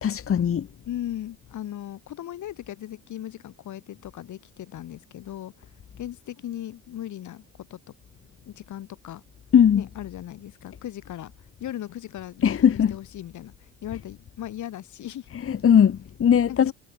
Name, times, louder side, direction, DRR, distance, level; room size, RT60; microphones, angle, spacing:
voice 1, 0.0-0.7 9.5-9.8 12.4-12.9 15.5-16.7, left 8 dB, 45° left, 1.4 m, -19 dB
voice 2, 0.8-5.5 6.0-7.8 8.4-9.2 9.7-11.3 11.6-13.5 13.8-15.3 16.5-16.7, left 12 dB, 75° left, 5.0 m, -37 dB
cardioid pair, 90°, 30 cm